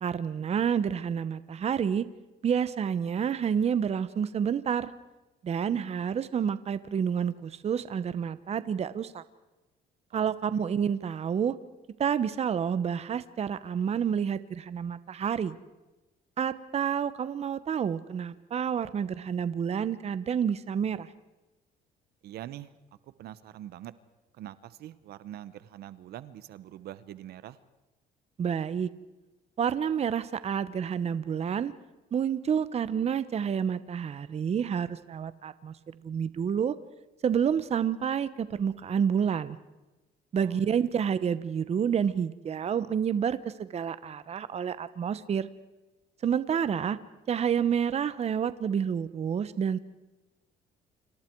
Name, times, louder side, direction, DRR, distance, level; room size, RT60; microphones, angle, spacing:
voice 1, 0.0-2.1 2.4-4.9 5.4-9.2 10.1-11.6 12.0-15.5 16.4-21.1 28.4-28.9 29.6-31.7 32.1-35.7 36.0-36.7 37.2-39.6 40.3-45.5 46.2-47.0 47.3-49.8, right 7 dB, 40° right, 14 dB, 1.0 m, -29 dB
voice 2, 22.2-22.7 23.2-23.9 24.3-27.6 40.4-40.9, right 12 dB, 70° right, 15 dB, 1.1 m, -44 dB
30.0 x 26.5 x 4.7 m, 1.1 s
cardioid pair, 110°, 17 cm